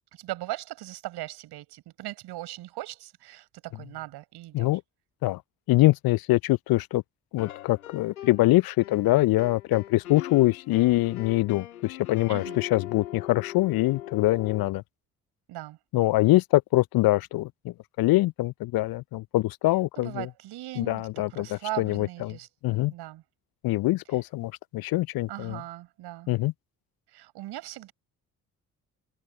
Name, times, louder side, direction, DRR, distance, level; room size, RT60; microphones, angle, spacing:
voice 1, 0.1-4.8 12.3-12.6 15.5-15.8 20.0-22.5 22.9-23.2 25.3-26.3 27.1-27.9, right 16 dB, 60° right, 6.0 m, -39 dB
voice 2, 5.7-7.0 7.3-14.8 15.9-20.3 20.8-22.4 22.6-22.9 23.6-25.6 26.3-26.5, left 18 dB, 55° left, 0.9 m, -24 dB
sound 1, 7.4-8.5 8.8-14.7, left 12 dB, 80° left, 4.2 m, -41 dB
figure-of-eight pair, 40°, 44 cm